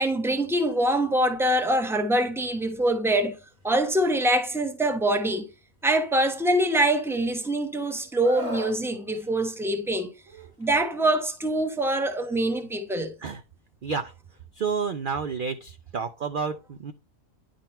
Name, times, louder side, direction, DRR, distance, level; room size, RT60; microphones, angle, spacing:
voice 1, 0.0-3.4 3.6-5.5 5.8-10.1 10.6-13.1, right 1 dB, ahead, 0.9 m, -24 dB
Screaming, 8.2-8.8 10.3-10.5, left 2 dB, 70° right, 1.9 m, -35 dB
voice 2, 13.8-14.1 14.5-16.9, right 5 dB, 55° right, 0.6 m, -30 dB
10.0 x 3.9 x 4.3 m
omnidirectional pair, 1.4 m